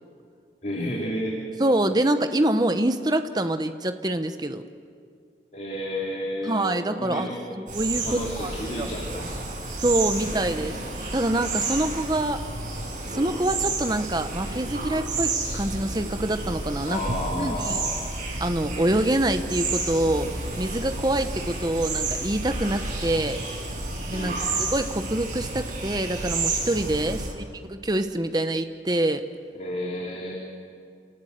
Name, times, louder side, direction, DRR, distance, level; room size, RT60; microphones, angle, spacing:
voice 1, 0.6-1.4 5.5-7.6 8.0-9.5 10.1-10.4 16.9-18.0 24.0-24.5 27.1-27.3 29.5-30.3, equal, 45° left, -3 dB, 3.0 m, -32 dB
voice 2, 1.6-4.6 6.4-7.3 7.6-8.5 8.8-8.9 9.8-10.8 11.1-12.4 13.1-17.0 17.3-17.8 18.4-20.3 20.6-23.4 24.1-24.3 24.6-29.2, right 1 dB, 25° right, 8 dB, 1.0 m, -25 dB
sound 1, 7.7-27.3, right 3 dB, 45° right, 6.4 m, -31 dB
28.5 x 18.5 x 8.0 m, 2.2 s
head